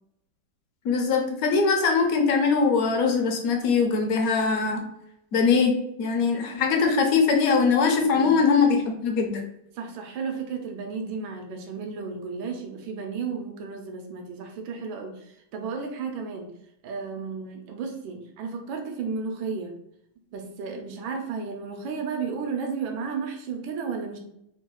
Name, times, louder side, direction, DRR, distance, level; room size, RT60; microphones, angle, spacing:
voice 1, 0.8-4.9 5.3-9.4, left 5 dB, 70° left, 3 dB, 0.8 m, -22 dB
voice 2, 9.7-16.5 16.8-19.7 20.3-24.2, right 5 dB, 80° right, 3 dB, 1.4 m, -33 dB
3.6 x 2.3 x 4.5 m, 0.79 s
omnidirectional pair, 2.2 m